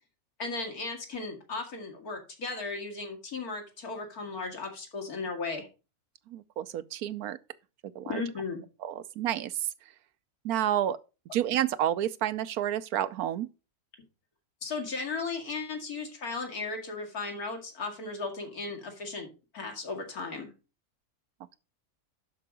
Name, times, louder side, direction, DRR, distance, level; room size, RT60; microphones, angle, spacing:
voice 1, 0.4-5.7 8.1-8.6 14.6-20.5, left 4 dB, 85° left, 2.7 m, -36 dB
voice 2, 6.3-7.4 7.9-8.2 8.8-9.5 10.4-11.0 11.3-13.5, right 11 dB, 85° right, 1.2 m, -30 dB
11.5 x 4.6 x 5.1 m
omnidirectional pair, 1.5 m